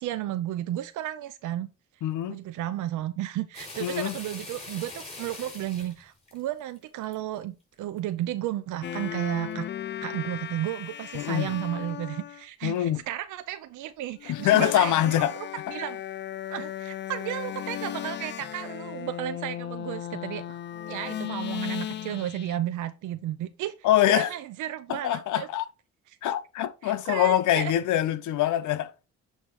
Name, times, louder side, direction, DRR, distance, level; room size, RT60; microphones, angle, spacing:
voice 1, 0.0-1.7 2.3-9.7 10.0-15.3 15.7-16.0 16.5-20.6 20.9-23.7 24.1-25.5 26.8-27.7, right 13 dB, 80° right, 0.5 m, -33 dB
voice 2, 2.0-2.4 3.8-4.1 11.1-11.6 12.6-13.0 14.3-15.4 23.8-24.3 24.9-25.6 26.2-28.9, left 12 dB, 75° left, 0.7 m, -24 dB
sound 1, 3.5-7.2 7.7-8.1 8.5-8.6 9.0-9.6 10.1-10.2 10.7-10.8 11.0-11.3 11.9-12.0 12.8-12.9, left 2 dB, 20° left, 4.2 m, -43 dB
sound 2, 8.8-12.4 14.2-22.6, left 10 dB, 40° left, 0.4 m, -36 dB
8.1 x 2.9 x 4.6 m
cardioid pair, 90°, 30 cm